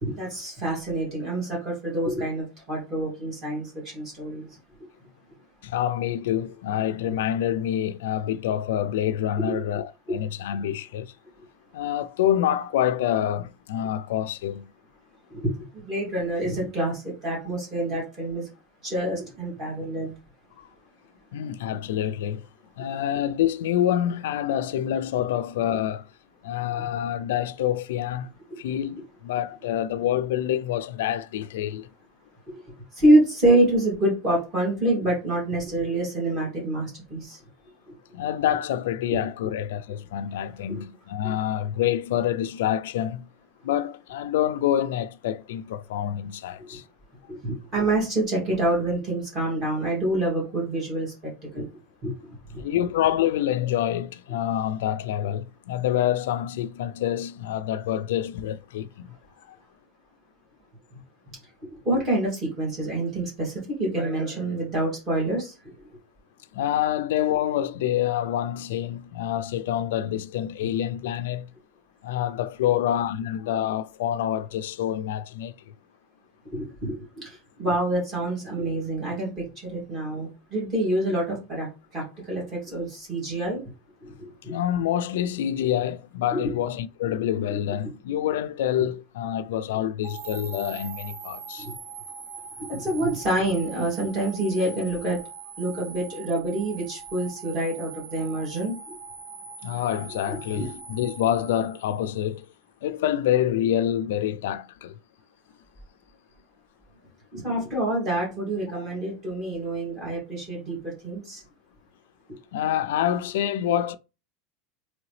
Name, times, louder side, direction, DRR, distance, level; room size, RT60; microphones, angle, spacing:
voice 1, 0.0-4.5 9.5-9.6 10.1-10.2 15.3-18.5 18.8-20.1 32.9-37.4 40.7-40.8 41.2-41.3 46.6-46.8 47.3-51.7 52.0-52.6 61.6-65.5 76.5-81.7 81.9-83.6 84.0-84.5 86.3-86.5 87.5-87.6 91.6-91.7 92.6-95.2 95.6-99.0 100.3-100.7 107.3-111.4, right 1 dB, 20° right, 2.2 m, -27 dB
voice 2, 5.6-11.1 11.7-14.7 20.6-20.7 21.3-22.5 22.8-26.1 26.4-31.9 38.1-43.3 43.6-46.8 52.6-59.2 59.5-59.6 66.5-71.5 72.0-75.6 84.4-91.7 99.6-102.5 102.8-105.0 108.7-108.9 112.5-113.9, left 11 dB, 90° left, 0.3 m, -27 dB
sound 1, 90.0-102.2, right 6 dB, 35° right, 0.7 m, -42 dB
3.9 x 3.1 x 3.2 m
supercardioid pair, 175°, 0 cm